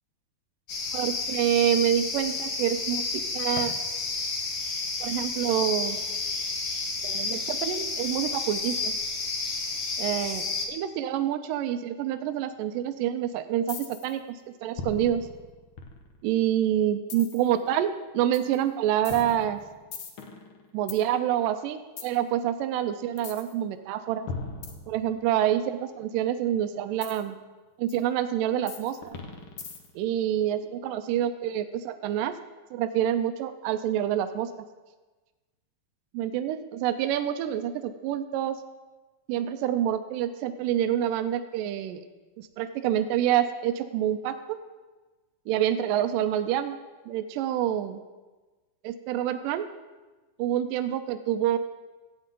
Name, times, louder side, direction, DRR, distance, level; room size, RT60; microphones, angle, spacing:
sound 1, 0.7-10.7, left 3 dB, 55° left, 2.0 m, -31 dB
voice 1, 0.9-3.7 5.0-6.0 7.0-8.9 10.0-13.8 14.0-15.2 16.2-19.6 20.7-24.3 24.9-27.4 27.8-29.2 30.0-32.3 32.7-34.5 36.1-38.6 39.3-42.0 42.4-44.6 45.5-46.8 47.1-48.0 48.8-49.7 50.4-51.6, right 11 dB, 85° right, 9 dB, 2.3 m, -27 dB
sound 2, 13.7-14.2 14.8-16.3 17.1-17.5 18.3-18.6 19.0-21.0 22.0-22.2 23.2-23.5 24.3-25.4 27.0-27.2 27.9-28.0 28.7-30.0, left 5 dB, 70° left, 1.2 m, -39 dB
15.0 x 9.0 x 3.7 m, 1.2 s
omnidirectional pair, 3.8 m